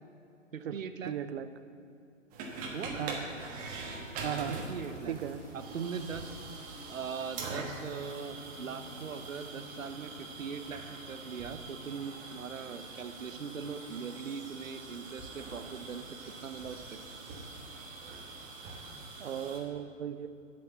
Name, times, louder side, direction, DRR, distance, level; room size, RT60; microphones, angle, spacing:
voice 1, 0.5-1.1 2.7-3.0 4.5-5.1 5.5-6.5 6.9-16.1 16.4-17.0, right 6 dB, 85° right, 10 dB, 0.8 m, -40 dB
voice 2, 1.0-1.5 3.0-3.2 4.2-4.6 5.1-5.4 19.2-20.3, right 9 dB, 55° right, 11 dB, 0.7 m, -36 dB
sound 1, 2.3-19.6, right 3 dB, 20° right, 1.2 m, -43 dB
sound 2, 4.3-10.7, left 1 dB, 25° left, 2.2 m, -54 dB
8.3 x 6.5 x 7.4 m, 2.6 s
hypercardioid pair, 130°, 38 cm